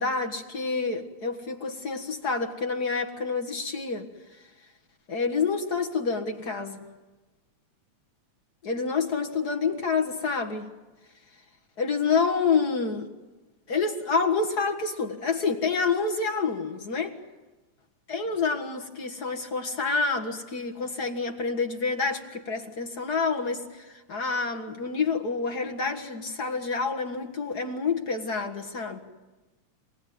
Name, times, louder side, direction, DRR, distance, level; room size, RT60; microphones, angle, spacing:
voice 1, 0.0-4.1 5.1-6.8 8.6-10.7 11.8-13.1 13.7-17.2 18.1-29.0, left 4 dB, 40° left, 1.8 m, -28 dB
27.5 x 19.0 x 9.4 m
omnidirectional pair, 3.3 m